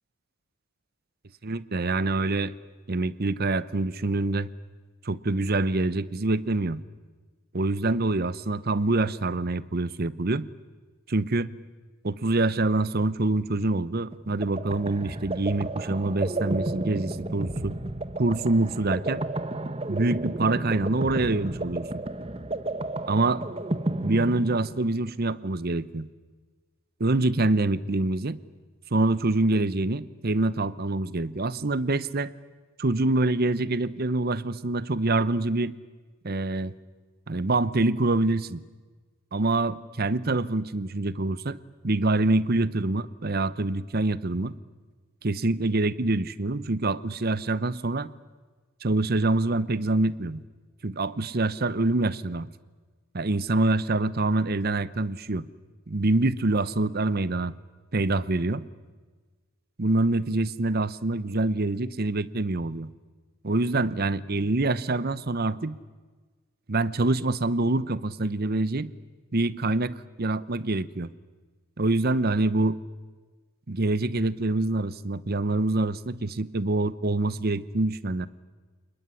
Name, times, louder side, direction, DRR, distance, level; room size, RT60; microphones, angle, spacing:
voice 1, 1.4-2.5 2.9-4.5 5.0-6.8 7.5-10.5 11.1-11.5 12.0-17.7 18.2-19.2 19.9-22.0 23.1-23.4 24.0-26.1 27.0-28.4 28.9-32.3 32.8-35.7 36.2-36.7 37.3-38.6 39.3-41.6 41.8-44.5 45.2-48.1 48.8-50.4 50.8-52.5 53.1-55.5 55.9-57.5 57.9-58.6 59.8-62.9 63.4-65.8 66.7-68.9 69.3-71.1 71.8-72.8 73.7-78.3, right 2 dB, 45° right, 17 dB, 0.9 m, -25 dB
sound 1, 14.1-25.0, right 2 dB, 30° right, 1.1 m, -32 dB
29.5 x 20.5 x 9.8 m, 1.4 s
head